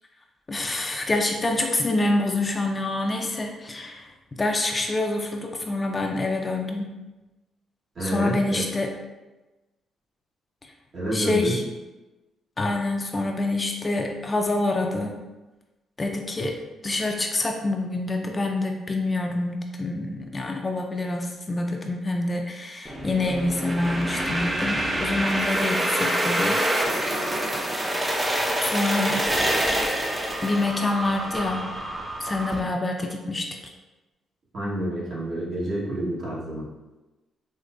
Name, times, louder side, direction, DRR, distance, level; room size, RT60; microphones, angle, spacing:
voice 1, 0.5-4.1 4.4-6.9 8.0-8.9 11.1-11.6 12.6-15.2 16.0-16.6 16.8-26.6 28.6-29.3 30.4-31.7 32.2-33.5, left 2 dB, 30° left, 3 dB, 0.4 m, -26 dB
voice 2, 7.9-8.6 10.9-11.6 34.5-36.7, right 1 dB, 55° right, -7 dB, 1.4 m, -28 dB
sound 1, 22.8-32.6, right 1 dB, 15° right, 0.6 m, -26 dB
4.6 x 2.1 x 2.5 m, 1.1 s
supercardioid pair, 70°, 0 cm